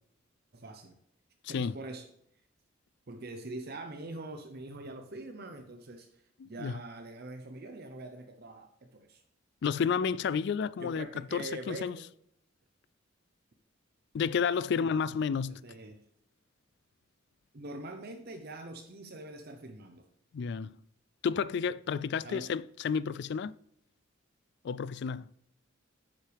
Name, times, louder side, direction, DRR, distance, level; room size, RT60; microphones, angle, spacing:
voice 1, 0.5-1.0 1.5-2.1 3.1-9.2 10.8-12.1 14.8-14.9 15.5-16.0 17.5-20.1 22.2-22.5, right 2 dB, 50° right, 0.8 m, -44 dB
voice 2, 6.4-6.8 9.6-11.1 11.3-12.0 14.1-15.6 20.3-20.8 21.2-23.5 24.6-25.3, left 6 dB, 60° left, 0.3 m, -31 dB
9.3 x 7.5 x 3.4 m
head